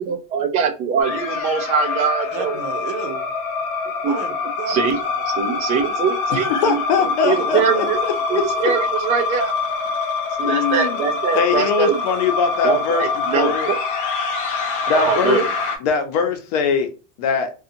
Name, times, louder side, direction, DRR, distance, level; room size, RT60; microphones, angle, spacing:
voice 1, 0.0-2.6 4.0-4.2 4.7-4.9 5.4-8.0 8.3-9.5 10.4-12.0 12.6-13.5 14.9-15.5, right 6 dB, 35° right, 0.4 m, -22 dB
sound 1, 1.0-15.8, left 4 dB, 40° left, 0.5 m, -25 dB
voice 2, 2.3-3.3 4.0-6.0 7.2-7.5, right 5 dB, 90° right, 0.8 m, -33 dB
voice 3, 6.4-8.7 10.4-11.0 11.3-13.1 13.3-13.7 14.9-15.4 15.8-16.9 17.2-17.5, left 6 dB, 80° left, 0.8 m, -21 dB
2.7 x 2.3 x 2.6 m
cardioid pair, 175°, 20 cm